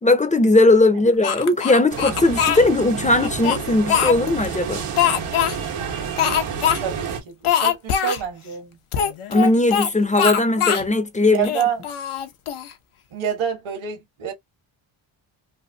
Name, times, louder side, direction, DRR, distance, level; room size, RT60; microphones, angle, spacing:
voice 1, 0.0-4.9 9.3-11.5, left 2 dB, 15° left, 0.4 m, -18 dB
Speech, 1.2-2.6 3.2-4.5 5.0-5.6 6.2-6.8 7.1-7.2 7.4-8.2 8.9-9.9 10.2-10.9 11.4-12.7, left 9 dB, 85° left, 0.8 m, -22 dB
sound 1, 1.9-7.2, right 6 dB, 90° right, 1.4 m, -29 dB
voice 2, 6.8-8.8 11.3-11.8 13.1-14.3, right 8 dB, 70° right, 1.4 m, -27 dB
3.3 x 2.5 x 2.6 m
cardioid pair, 115°, 49 cm